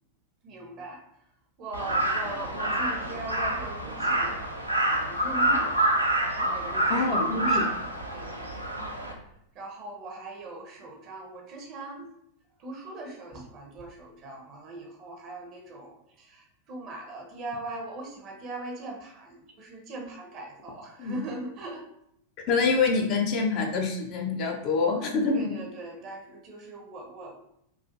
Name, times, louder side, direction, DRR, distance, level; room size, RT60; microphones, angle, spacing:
voice 1, 0.4-1.0 1.6-4.4 4.8-7.8 8.1-8.7 9.2-12.1 12.6-21.8 25.3-27.3, right 2 dB, 35° right, 1 dB, 0.7 m, -40 dB
Crow, 1.7-9.1, right 1 dB, 85° right, 0.4 m, -27 dB
voice 2, 6.9-7.7 21.0-21.2 22.5-25.5, left 4 dB, 40° left, 1 dB, 0.5 m, -26 dB
2.4 x 2.3 x 2.6 m, 0.75 s
figure-of-eight pair, 90°, 0 cm